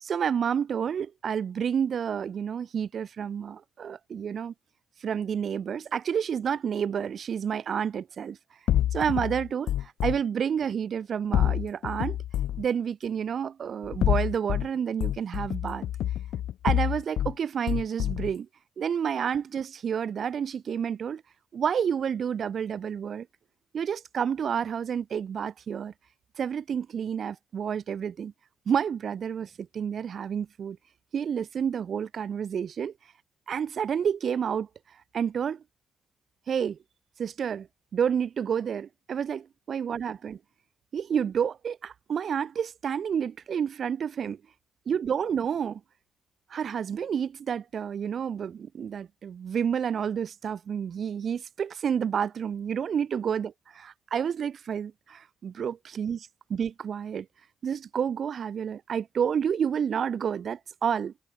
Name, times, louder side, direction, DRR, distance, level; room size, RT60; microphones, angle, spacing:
voice 1, 0.0-4.5 5.0-8.4 8.9-12.2 12.6-15.9 16.6-18.5 18.8-21.2 21.5-23.3 23.7-25.9 26.4-28.3 28.7-30.8 31.1-32.9 33.5-34.7 35.1-35.6 36.5-36.8 37.2-37.7 37.9-40.4 40.9-44.4 44.9-45.8 46.5-57.3 57.6-61.1, right 7 dB, 55° right, 0.9 m, -29 dB
sound 1, 8.7-10.2 11.3-12.7 13.8-14.7 15.0-17.3 17.7-18.3, left 12 dB, 75° left, 0.5 m, -27 dB
cardioid pair, 90°, 0 cm